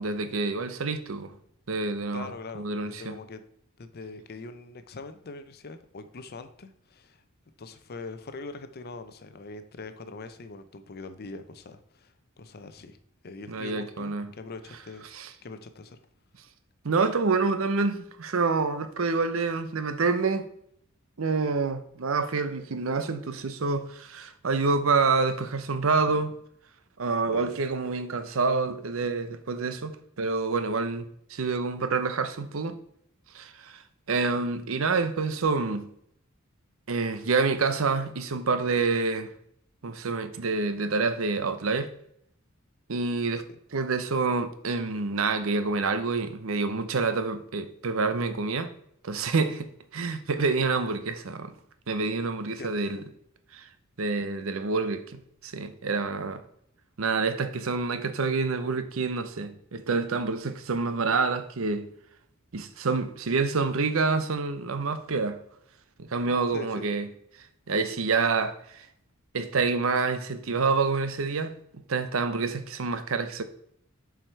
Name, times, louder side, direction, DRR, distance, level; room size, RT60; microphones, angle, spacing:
voice 1, 0.0-1.3 1.7-3.2 13.5-14.3 15.1-15.3 16.8-20.5 21.2-26.3 27.0-32.8 33.3-33.8 34.1-35.9 36.9-39.3 39.8-41.9 42.9-43.4 43.7-48.7 49.0-51.5 51.9-53.0 53.5-53.7 54.0-56.4 57.0-61.9 62.5-65.4 66.0-67.1 67.7-68.9 69.3-71.6 71.9-73.4, right 4 dB, 70° right, 0.7 m, -27 dB
voice 2, 2.1-3.4 3.8-7.2 7.6-13.0 13.2-15.1 15.4-16.0 27.2-27.6 43.3-43.6 52.6-53.0 66.5-66.9, left 3 dB, 50° left, 0.6 m, -42 dB
7.5 x 4.8 x 4.5 m
head